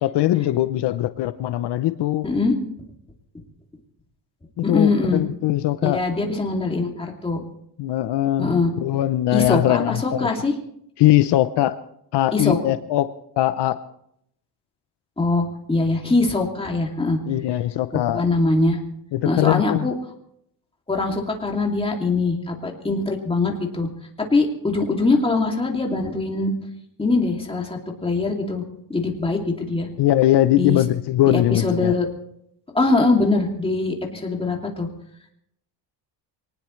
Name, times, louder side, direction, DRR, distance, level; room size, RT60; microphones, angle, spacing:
voice 1, 0.0-2.3 4.6-6.0 7.8-10.3 11.0-11.8 12.1-13.8 17.3-18.3 19.1-19.9 30.0-31.9, left 14 dB, 70° left, 12 dB, 0.7 m, -21 dB
voice 2, 2.2-2.5 4.6-5.2 5.8-7.4 8.4-8.7 9.3-10.6 12.3-12.6 15.2-17.2 17.9-18.8 19.2-19.9 20.9-23.9 24.3-26.5 27.0-28.6 28.9-29.9 30.5-30.8 31.2-32.1 32.7-34.9, left 3 dB, 15° left, 1 dB, 2.5 m, -22 dB
24.0 x 19.0 x 3.2 m, 0.73 s
cardioid pair, 145°, 42 cm